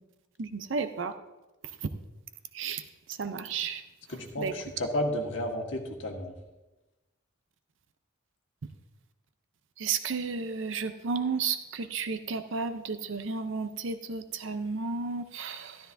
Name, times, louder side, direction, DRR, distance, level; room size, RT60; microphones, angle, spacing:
voice 1, 0.4-1.1 2.5-2.8 3.2-3.8 4.4-4.5 9.8-15.8, right 5 dB, 70° right, 10 dB, 0.6 m, -32 dB
voice 2, 4.1-6.4, left 1 dB, 70° left, 1 dB, 1.5 m, -32 dB
12.5 x 12.5 x 2.6 m, 1.1 s
head